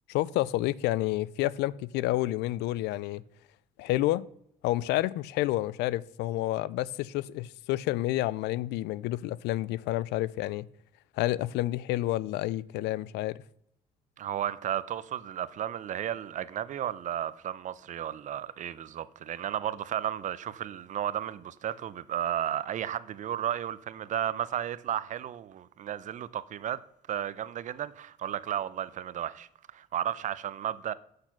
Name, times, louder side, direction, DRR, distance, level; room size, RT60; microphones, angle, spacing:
voice 1, 0.1-3.2 3.8-4.3 4.6-10.7 11.2-13.4, left 16 dB, 85° left, 0.4 m, -29 dB
voice 2, 14.2-26.8 27.1-30.9, right 10 dB, 50° right, 0.6 m, -33 dB
7.9 x 6.6 x 5.8 m
cardioid pair, 110°, 17 cm